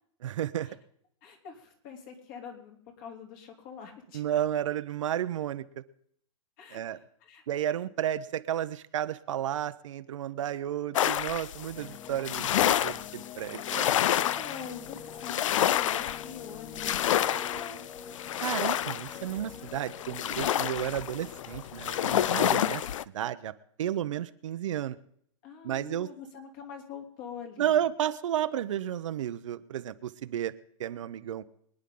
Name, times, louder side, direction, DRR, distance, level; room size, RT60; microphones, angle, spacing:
voice 1, 0.2-0.7 4.1-5.8 6.7-7.0 7.5-13.9 18.4-22.8 23.1-23.5 23.8-25.0 25.6-26.1 27.6-30.5 30.8-31.4, right 11 dB, 70° right, 12 dB, 0.9 m, -32 dB
voice 2, 1.2-4.2 6.6-7.4 13.6-17.8 25.4-27.8, left 6 dB, 40° left, 3 dB, 3.1 m, -45 dB
sound 1, 10.9-23.0, left 11 dB, 70° left, 0.5 m, -29 dB
sound 2, 11.7-22.8, left 7 dB, 20° left, 0.5 m, -46 dB
24.0 x 10.0 x 3.9 m, 0.65 s
hypercardioid pair, 155°, 17 cm